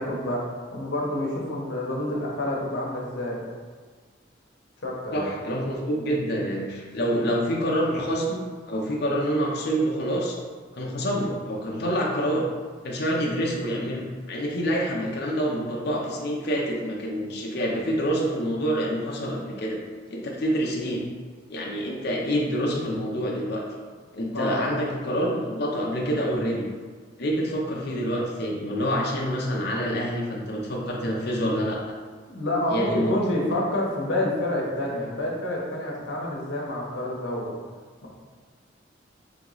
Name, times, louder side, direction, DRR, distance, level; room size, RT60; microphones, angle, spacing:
voice 1, 0.0-3.4 4.8-5.3 24.3-24.7 32.3-37.5 38.0-38.1, left 1 dB, 75° left, -3 dB, 0.9 m, -28 dB
voice 2, 5.1-10.4 10.7-12.4 12.8-19.8 20.1-21.0 21.5-23.6 24.1-26.6 27.2-31.8 32.7-33.2, equal, 55° left, -2 dB, 0.6 m, -27 dB
3.5 x 3.0 x 3.8 m, 1.5 s
head